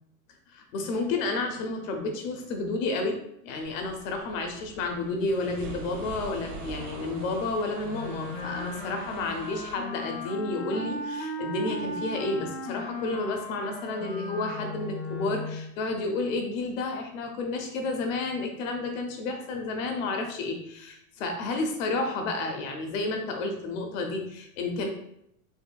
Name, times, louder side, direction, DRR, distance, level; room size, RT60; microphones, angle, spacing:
voice 1, 0.5-24.9, left 3 dB, 60° left, 4 dB, 1.0 m, -31 dB
sound 1, 3.6-9.7, right 2 dB, 85° right, 1.4 m, -43 dB
Wind instrument woodwind instrument, 7.8-15.7, left 1 dB, 25° left, 0.6 m, -36 dB
4.5 x 3.0 x 2.3 m, 0.74 s
supercardioid pair, 135°, 43 cm